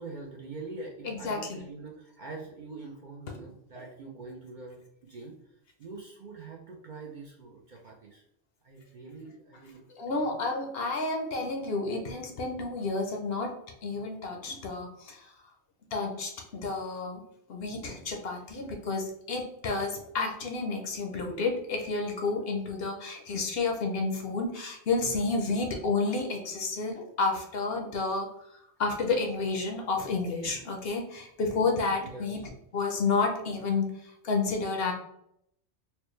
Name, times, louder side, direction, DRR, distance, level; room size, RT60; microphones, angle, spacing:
voice 1, 0.0-5.3 5.8-8.2 8.6-9.8 10.1-10.4 32.0-32.5, right 3 dB, 55° right, -1 dB, 0.6 m, -44 dB
voice 2, 1.0-1.6 3.3-3.4 3.7-3.9 9.9-13.6 13.8-15.3 15.9-17.2 17.5-28.3 28.8-32.4 32.7-34.9, left 3 dB, 60° left, 3 dB, 0.8 m, -30 dB
4.3 x 2.2 x 3.1 m, 0.75 s
omnidirectional pair, 1.2 m